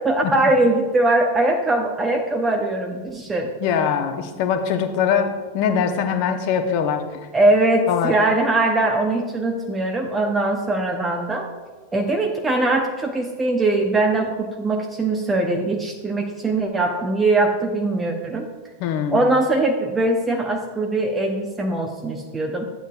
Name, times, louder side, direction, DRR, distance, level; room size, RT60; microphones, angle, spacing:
voice 1, 0.0-3.5 7.3-11.5 11.9-18.5 19.1-22.7, right 2 dB, 15° right, 2 dB, 0.9 m, -21 dB
voice 2, 3.6-7.0 7.9-8.1 18.8-19.3, left 7 dB, 45° left, 6 dB, 1.0 m, -22 dB
12.5 x 9.0 x 2.5 m, 1.3 s
figure-of-eight pair, 90°, 0 cm